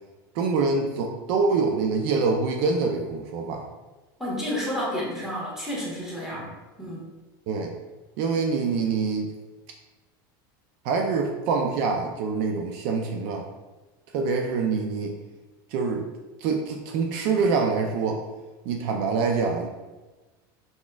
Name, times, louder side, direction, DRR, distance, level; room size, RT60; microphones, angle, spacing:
voice 1, 0.3-3.6 6.4-6.5 7.5-7.7 8.2-9.3 10.8-13.5 14.1-15.1 15.7-16.0 16.4-18.2 18.6-19.7, right 4 dB, 60° right, 2 dB, 0.5 m, -25 dB
voice 2, 4.2-6.5 6.8-7.1, equal, 5° right, -5 dB, 1.3 m, -30 dB
4.0 x 3.7 x 2.3 m, 1.2 s
supercardioid pair, 135°, 12 cm